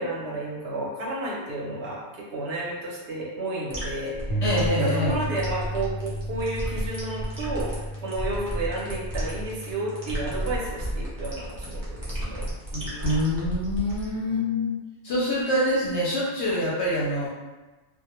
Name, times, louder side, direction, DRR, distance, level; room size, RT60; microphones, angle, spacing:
voice 1, 0.0-4.4 4.8-12.5 14.0-14.1, right 2 dB, 60° right, -3 dB, 0.7 m, -32 dB
sound 1, 3.7-14.1, right 1 dB, 30° right, 0.3 m, -33 dB
sound 2, 4.3-10.5, equal, 90° left, 1.0 m, -33 dB
voice 2, 4.4-5.1 12.7-14.8 15.0-17.3, left 1 dB, 65° left, -6 dB, 0.8 m, -25 dB
2.2 x 2.1 x 2.9 m, 1.2 s
omnidirectional pair, 1.4 m